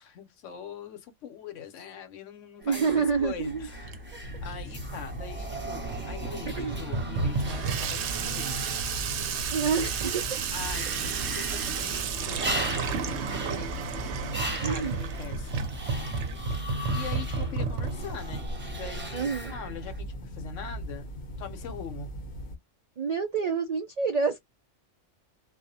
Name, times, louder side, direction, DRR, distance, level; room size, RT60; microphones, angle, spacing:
voice 1, 0.0-4.0 4.4-9.0 10.5-16.1 16.9-21.1 21.4-22.1, left 6 dB, 80° left, 1.0 m, -42 dB
sound 1, 2.6-20.0, right 1 dB, 15° right, 0.4 m, -40 dB
voice 2, 2.6-3.7 6.6-6.8 9.5-10.4 14.6-15.0 19.1-19.5 23.0-24.4, right 5 dB, 85° right, 0.3 m, -28 dB
Water tap faucet / Sink (filling or washing), 2.9-18.9, right 5 dB, 70° right, 0.8 m, -33 dB
sound 2, 4.2-22.6, equal, 55° left, 0.8 m, -39 dB
2.3 x 2.1 x 2.6 m
omnidirectional pair, 1.3 m